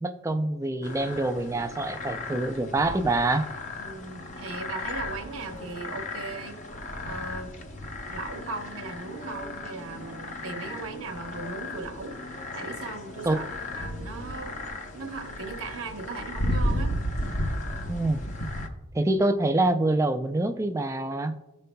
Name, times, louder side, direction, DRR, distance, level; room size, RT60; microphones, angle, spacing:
voice 1, 0.0-3.4 13.3-13.4 17.9-18.2 18.9-21.3, right 2 dB, 15° right, 8 dB, 0.3 m, -25 dB
sound 1, 0.8-18.7, left 1 dB, 35° left, 0.7 m, -34 dB
voice 2, 3.8-6.6 7.0-7.6 8.1-13.5 13.8-14.6 14.9-17.0, right 3 dB, 65° right, 5 dB, 0.9 m, -38 dB
15.0 x 5.3 x 2.2 m, 1.1 s
head